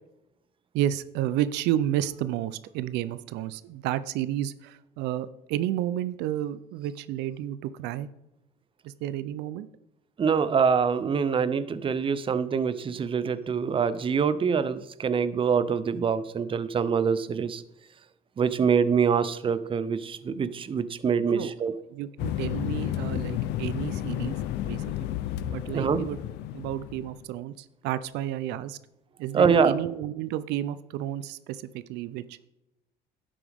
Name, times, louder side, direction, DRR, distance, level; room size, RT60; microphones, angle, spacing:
voice 1, 0.7-8.1 8.8-9.7 21.3-21.5 21.9-24.4 24.6-25.1 25.5-26.2 26.5-28.8 29.2-32.4, right 12 dB, 90° right, 15 dB, 0.5 m, -31 dB
voice 2, 10.2-17.6 18.4-21.7 25.7-26.0 29.3-29.7, right 6 dB, 30° right, 14 dB, 0.6 m, -25 dB
sound 1, 22.2-27.2, left 12 dB, 85° left, 0.6 m, -32 dB
11.0 x 8.6 x 3.5 m, 0.89 s
cardioid pair, 110°, 17 cm